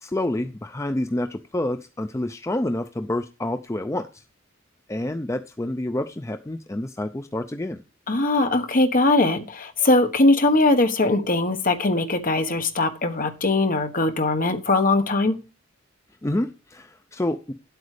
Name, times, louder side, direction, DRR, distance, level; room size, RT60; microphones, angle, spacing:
voice 1, 0.0-4.2 4.9-7.8 16.2-17.5, left 1 dB, 15° left, 0.5 m, -28 dB
voice 2, 8.1-15.3, left 2 dB, 45° left, 1.4 m, -20 dB
9.7 x 8.1 x 5.0 m
head